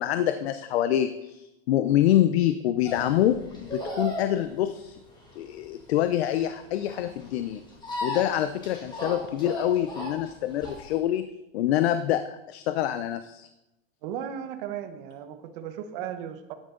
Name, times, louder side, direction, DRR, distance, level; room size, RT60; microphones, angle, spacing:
voice 1, 0.0-5.0 5.4-7.6 8.0-11.3 11.5-12.2 12.5-13.5, left 12 dB, 80° left, 10 dB, 0.7 m, -26 dB
sound 1, 2.8-11.0, left 1 dB, 15° left, 2.5 m, -36 dB
voice 2, 14.0-16.5, right 9 dB, 55° right, 9 dB, 1.3 m, -36 dB
13.5 x 10.0 x 3.9 m, 0.96 s
supercardioid pair, 155°, 31 cm